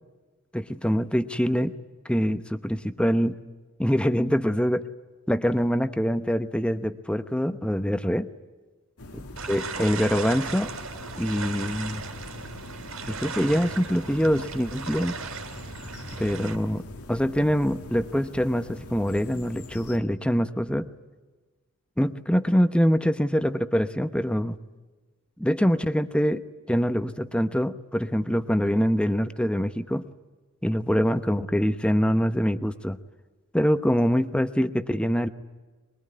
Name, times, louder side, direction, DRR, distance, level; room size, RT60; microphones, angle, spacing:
voice 1, 0.5-1.7 2.0-3.4 3.8-4.9 5.3-8.3 9.5-10.7 11.2-12.0 13.1-15.1 16.2-20.9 22.0-24.6 25.4-26.4 26.7-30.1 30.6-33.0 33.5-35.3, equal, 5° left, 11 dB, 0.8 m, -24 dB
sound 1, 9.0-20.0, left 1 dB, 90° left, 1.9 m, -43 dB
sound 2, 9.4-16.6, right 4 dB, 75° right, 3.5 m, -36 dB
23.5 x 22.5 x 9.6 m, 1.3 s
head